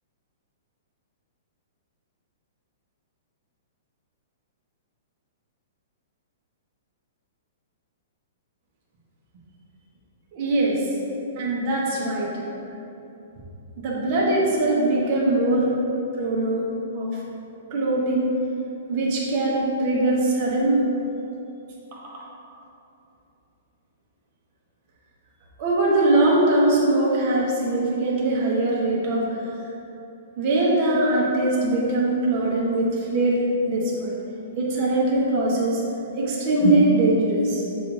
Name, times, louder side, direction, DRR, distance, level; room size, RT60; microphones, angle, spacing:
voice 1, 10.3-10.8 11.3-12.3 13.8-15.7 16.2-16.7 16.9-17.2 17.7-18.3 18.9-20.8 21.9-22.2 25.6-29.3 30.4-34.2 34.6-35.8 36.2-37.6, right 2 dB, 35° right, -5 dB, 1.1 m, -21 dB
7.5 x 2.6 x 4.8 m, 2.9 s
hypercardioid pair, 170°, 0 cm